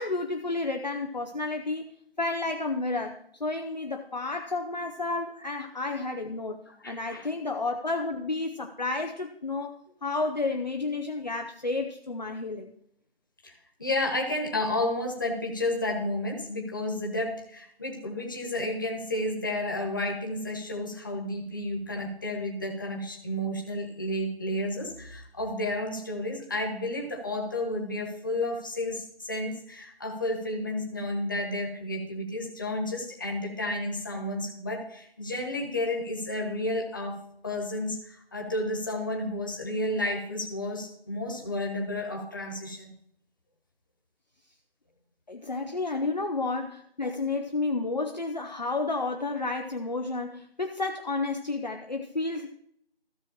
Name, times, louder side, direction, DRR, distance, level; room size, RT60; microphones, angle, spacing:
voice 1, 0.0-1.9 2.2-6.6 6.8-9.7 10.0-12.7 45.3-52.5, left 3 dB, 45° left, 4 dB, 0.7 m, -31 dB
voice 2, 6.7-7.3 13.4-13.5 13.8-42.9, left 1 dB, 20° left, 0 dB, 1.5 m, -31 dB
15.5 x 6.3 x 2.9 m, 0.71 s
figure-of-eight pair, 165°, 30 cm